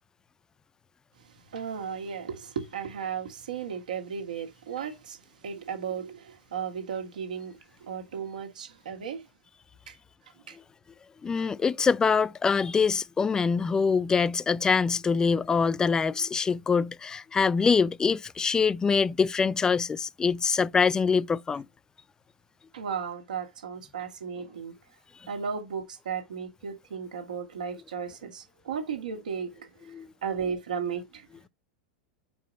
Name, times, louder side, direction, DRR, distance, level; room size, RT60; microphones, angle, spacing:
voice 1, 1.5-9.2 9.9-10.0 10.5-10.6 11.4-11.5 22.7-24.7 25.3-29.9 30.2-31.3, right 7 dB, 65° right, 1.5 m, -35 dB
voice 2, 11.2-21.6 29.9-30.1, left 5 dB, 15° left, 0.3 m, -24 dB
4.9 x 4.7 x 5.1 m
figure-of-eight pair, 90°, 5 cm